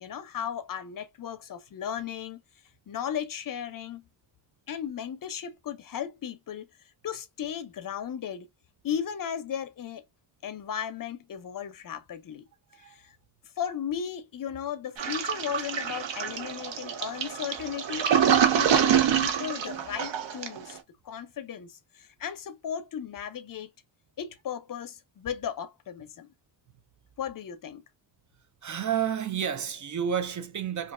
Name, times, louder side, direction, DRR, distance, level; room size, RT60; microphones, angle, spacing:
voice 1, 0.0-2.4 2.9-4.0 4.7-6.7 7.0-8.5 8.8-10.0 10.4-12.5 12.8-13.2 13.6-20.8 21.0-23.7 24.2-26.3 27.2-27.8, left 8 dB, 50° left, 0.5 m, -36 dB
Toilet flush, 15.0-20.7, right 8 dB, 80° right, 0.7 m, -26 dB
voice 2, 28.6-30.9, right 8 dB, 45° right, 0.4 m, -30 dB
3.0 x 2.4 x 2.4 m
cardioid pair, 95°, 43 cm